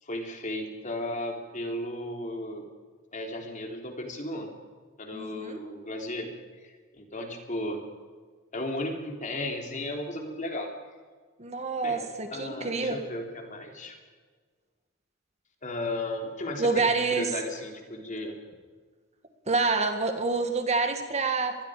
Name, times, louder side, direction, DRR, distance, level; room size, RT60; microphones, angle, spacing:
voice 1, 0.0-2.7 3.1-4.5 5.0-6.3 6.6-7.8 8.5-10.7 11.8-12.0 12.3-13.9 15.6-18.4, left 1 dB, 40° left, 3 dB, 3.4 m, -35 dB
voice 2, 5.1-5.6 11.4-13.0 16.6-17.3 19.5-21.6, right 3 dB, 35° right, 6 dB, 2.0 m, -27 dB
25.0 x 20.0 x 5.1 m, 1.5 s
head